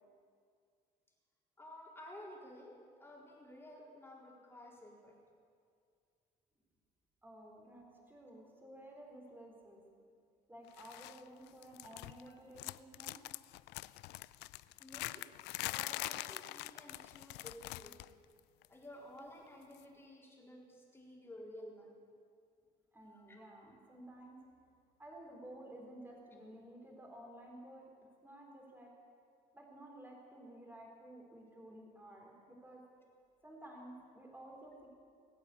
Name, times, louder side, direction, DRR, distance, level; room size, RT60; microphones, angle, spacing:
voice 1, 1.6-5.2 14.8-15.2 15.6-18.0 18.7-21.9 23.3-23.5, left 1 dB, 15° left, -3 dB, 4.0 m, -53 dB
voice 2, 7.2-9.8 10.5-13.2 22.9-24.4 25.0-27.9 28.2-28.9 29.5-32.8 33.4-34.9, right 1 dB, 10° right, -1 dB, 3.9 m, -53 dB
sound 1, 10.8-11.2 11.5-12.3 12.5-18.1 18.4-18.6 19.7-19.8, left 19 dB, 90° left, 0.4 m, -44 dB
20.0 x 8.8 x 8.3 m, 2.2 s
cardioid pair, 110°, 17 cm